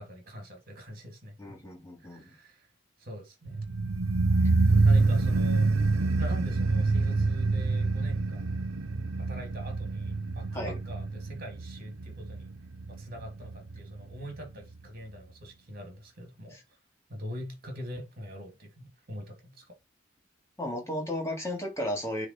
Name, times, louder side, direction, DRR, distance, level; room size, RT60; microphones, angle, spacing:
voice 1, 0.0-1.6 2.0-2.7 3.0-3.6 4.8-5.7 6.2-8.6 9.2-12.5 12.9-16.6 17.1-19.8, equal, 45° right, 2.8 m, -43 dB
voice 2, 1.4-2.3 4.4-4.5 10.5-10.8 16.5-16.6 20.6-22.3, left 1 dB, 15° left, 3.1 m, -34 dB
sound 1, 3.5-14.5 14.7-14.8, right 3 dB, 75° right, 0.8 m, -27 dB
9.6 x 3.8 x 4.6 m
head